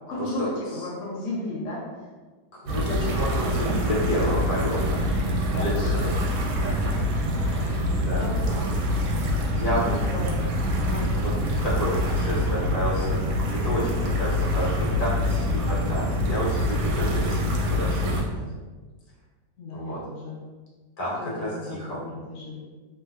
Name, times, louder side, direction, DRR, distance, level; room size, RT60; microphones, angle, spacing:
voice 1, 0.1-2.0 3.0-3.2 3.8-4.1 5.1-6.1 6.7-6.8 7.5-8.7 9.8-10.4 10.9-11.2 17.1-17.5 19.6-20.4 21.2-22.6, left 1 dB, 60° left, -6 dB, 1.0 m, -35 dB
voice 2, 2.6-5.0 5.5-6.0 6.6-6.7 7.5-8.2 9.5-10.0 11.2-11.3 11.6-13.2 13.6-18.4 19.7-20.0 21.0-22.0, equal, 75° left, -6 dB, 1.6 m, -30 dB
sound 1, 2.7-18.2, left 1 dB, 75° right, 1.1 m, -25 dB
3.1 x 2.7 x 2.3 m, 1.3 s
omnidirectional pair, 1.8 m